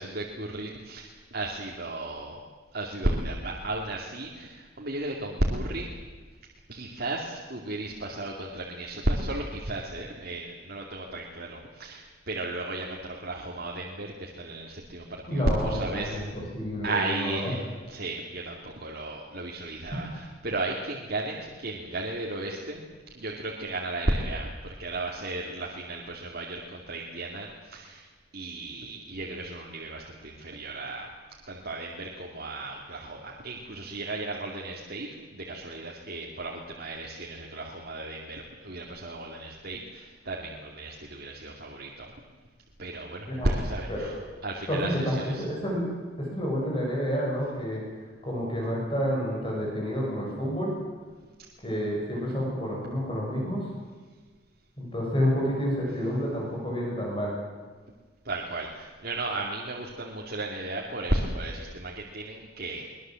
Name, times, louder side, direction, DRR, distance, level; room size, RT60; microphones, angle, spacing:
voice 1, 0.0-2.4 2.7-6.0 6.7-16.2 16.8-17.6 17.9-22.8 23.1-28.0 28.3-31.1 31.5-42.1 42.8-44.2 44.4-45.4 58.2-62.9, right 2 dB, 55° right, -1 dB, 2.5 m, -34 dB
voice 2, 15.3-17.5 43.3-43.6 43.9-44.1 44.7-45.9 46.2-47.8 48.2-50.7 51.6-53.7 54.8-57.3, equal, 30° left, -3 dB, 7.4 m, -29 dB
23.0 x 20.0 x 7.8 m, 1.4 s
head